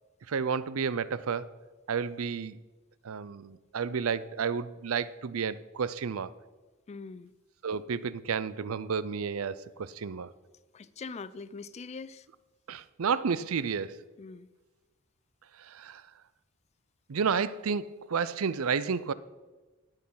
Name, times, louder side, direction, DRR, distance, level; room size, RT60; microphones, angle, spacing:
voice 1, 0.3-1.5 1.9-2.6 3.0-6.3 7.6-10.3 12.7-14.0 15.6-16.0 17.1-19.1, right 6 dB, 75° right, 0.5 m, -31 dB
voice 2, 6.9-7.3 10.7-12.3 14.2-14.5, left 4 dB, 30° left, 0.4 m, -42 dB
18.5 x 6.5 x 5.6 m
head